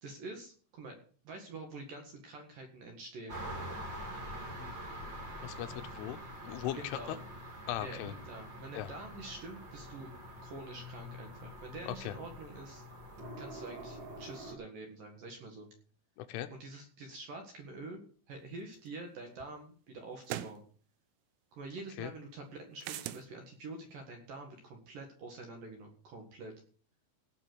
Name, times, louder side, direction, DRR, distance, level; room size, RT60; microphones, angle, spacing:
voice 1, 0.0-1.0 1.2-3.4 6.8-7.2 7.8-10.1 10.4-12.8 13.4-15.7 16.5-20.6 21.5-26.5, right 2 dB, 55° right, 2 dB, 2.7 m, -46 dB
sound 1, 3.3-14.5, equal, 35° right, 2.2 m, -45 dB
voice 2, 5.4-7.0 7.7-8.1 8.7-8.9 11.9-12.1 16.2-16.5 22.0-22.1, left 13 dB, 80° left, 10 dB, 3.1 m, -39 dB
sound 2, 18.9-19.0 20.3-20.6 22.8-23.3, right 13 dB, 80° right, 3.4 m, -39 dB
17.5 x 6.3 x 6.1 m, 0.43 s
omnidirectional pair, 5.9 m